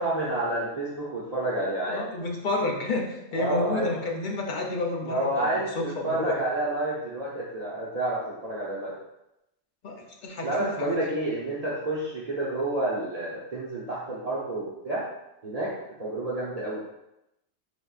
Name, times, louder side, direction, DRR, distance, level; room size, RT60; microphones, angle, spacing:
voice 1, 0.0-2.0 3.3-3.9 5.0-8.9 10.4-15.0 15.4-15.7 16.0-16.8, right 1 dB, 40° right, -7 dB, 0.7 m, -29 dB
voice 2, 1.9-6.3 9.8-11.0, left 2 dB, 50° left, 0 dB, 0.8 m, -30 dB
4.2 x 3.4 x 2.4 m, 0.88 s
omnidirectional pair, 1.2 m